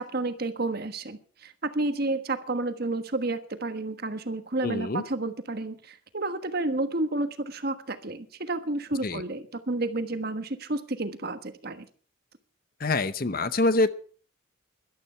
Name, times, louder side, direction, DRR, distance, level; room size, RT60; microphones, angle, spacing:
voice 1, 0.0-11.9, right 2 dB, 50° right, 9 dB, 1.4 m, -31 dB
voice 2, 4.6-5.0 9.0-9.2 12.8-13.9, left 2 dB, 45° left, 13 dB, 0.8 m, -25 dB
14.0 x 12.0 x 5.7 m, 0.43 s
head